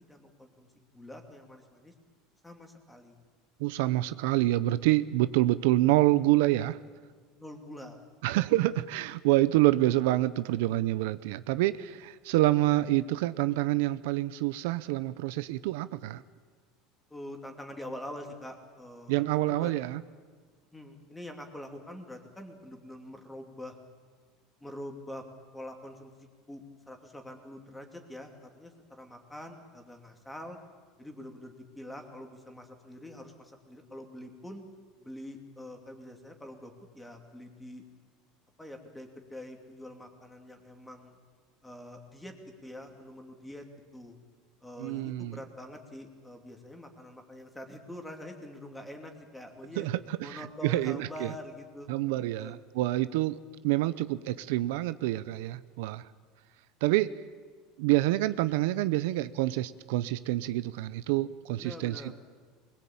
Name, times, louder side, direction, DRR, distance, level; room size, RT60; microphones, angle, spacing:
voice 1, 0.0-1.9 2.4-3.2 7.3-8.0 17.1-19.7 20.7-23.7 24.6-25.2 25.5-26.1 26.5-30.6 31.0-34.6 35.0-37.8 38.6-41.2 41.6-42.3 42.6-43.6 43.9-44.2 44.6-49.9 50.2-51.9 52.4-52.6 61.6-62.1, left 1 dB, 5° left, 4 dB, 2.7 m, -45 dB
voice 2, 3.6-6.8 8.2-16.2 19.1-20.0 44.8-45.4 49.8-51.3 51.9-53.4 53.6-56.0 56.8-57.1 57.8-62.1, right 16 dB, 75° right, 14 dB, 0.7 m, -27 dB
24.0 x 21.5 x 8.7 m, 1.5 s
cardioid pair, 160°, 0 cm